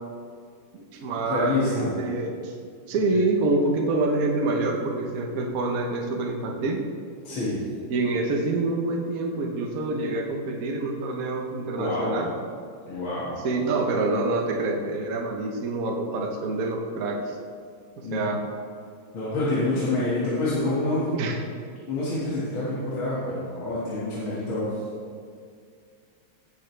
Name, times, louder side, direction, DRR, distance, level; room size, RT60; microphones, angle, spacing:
voice 1, 0.7-2.5 2.9-6.8 7.9-12.3 13.4-17.2 18.1-18.4 21.1-21.4, right 2 dB, 50° right, 1 dB, 1.3 m, -26 dB
voice 2, 1.3-1.9 2.9-3.2 7.2-7.6 11.8-12.1 12.9-13.3 18.0-18.4 19.1-21.1 21.9-24.8, left 2 dB, 75° left, -9 dB, 2.7 m, -27 dB
17.0 x 7.2 x 3.3 m, 2.2 s
omnidirectional pair, 2.3 m